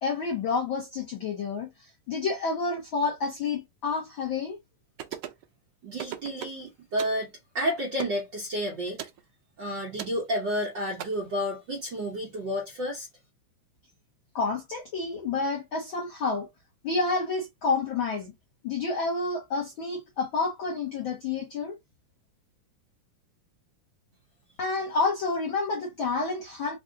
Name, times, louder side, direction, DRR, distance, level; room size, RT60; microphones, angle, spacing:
voice 1, 0.0-1.7 2.1-4.6 14.3-16.5 16.8-18.3 18.6-21.8 24.6-26.8, left 4 dB, 75° left, 1.1 m, -29 dB
sound 1, 5.0-5.4 6.0-6.6 7.0-7.2 8.0-8.2 9.0-9.2 10.0-10.2 11.0-11.1, right 11 dB, 85° right, 1.4 m, -37 dB
voice 2, 5.8-7.3 7.5-9.0 9.6-13.1, equal, 65° right, 1.1 m, -30 dB
4.8 x 2.4 x 3.8 m
omnidirectional pair, 3.6 m